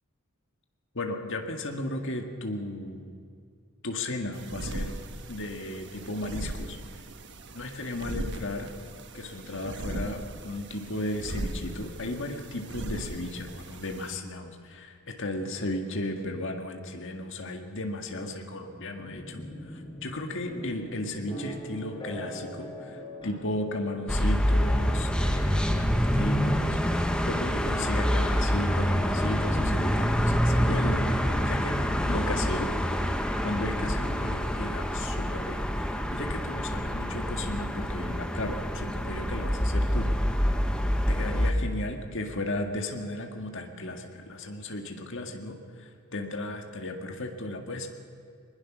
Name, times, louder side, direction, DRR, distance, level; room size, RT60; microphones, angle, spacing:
voice 1, 0.9-3.1 3.8-4.9 5.3-6.8 7.5-8.7 9.1-31.8 32.0-32.7 33.4-40.1 41.1-47.9, left 1 dB, 60° left, 4 dB, 1.8 m, -35 dB
sound 1, 4.3-14.1, right 1 dB, 55° right, 1.3 m, -39 dB
sound 2, 19.0-32.8, equal, 25° left, 5.7 m, -44 dB
sound 3, 24.1-41.5, equal, 5° left, 1.2 m, -26 dB
21.0 x 20.5 x 6.2 m, 2.3 s
head